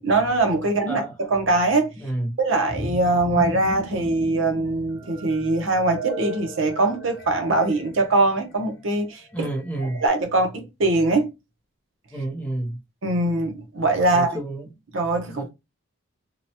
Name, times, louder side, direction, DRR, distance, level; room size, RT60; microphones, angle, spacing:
voice 1, 0.0-1.9 2.4-9.5 9.8-11.3 13.0-14.4 14.9-15.5, right 2 dB, 75° right, 0.8 m, -22 dB
voice 2, 2.0-2.4 9.3-10.0 12.1-12.8 14.1-14.7 15.3-15.5, right 1 dB, 5° left, 0.6 m, -29 dB
sound 1, 2.7-10.1, right 2 dB, 50° left, 1.0 m, -36 dB
2.9 x 2.2 x 2.7 m
head